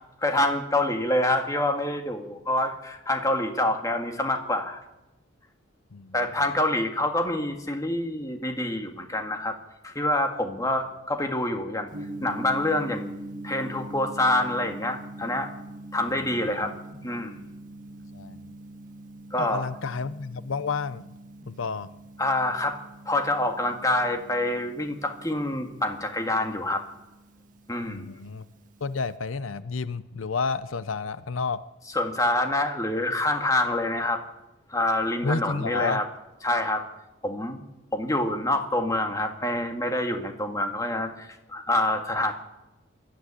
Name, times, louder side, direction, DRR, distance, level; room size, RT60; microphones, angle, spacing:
voice 1, 0.2-4.8 6.1-9.6 9.8-11.9 12.2-13.1 13.4-15.5 15.9-16.8 17.0-17.4 19.3-19.7 22.2-22.8 23.1-26.9 27.7-28.1 31.9-34.2 34.7-36.1 36.4-36.9 37.2-37.6 37.9-42.3, left 1 dB, 15° left, 5 dB, 1.9 m, -26 dB
Gong, 11.9-29.2, right 2 dB, 40° right, 1.9 m, -43 dB
voice 2, 16.3-16.7 18.1-18.4 19.4-21.1 21.5-21.9 27.9-28.4 28.8-31.6 35.2-36.0, left 4 dB, 85° left, 15 dB, 0.7 m, -30 dB
22.0 x 13.0 x 9.8 m, 1.0 s
head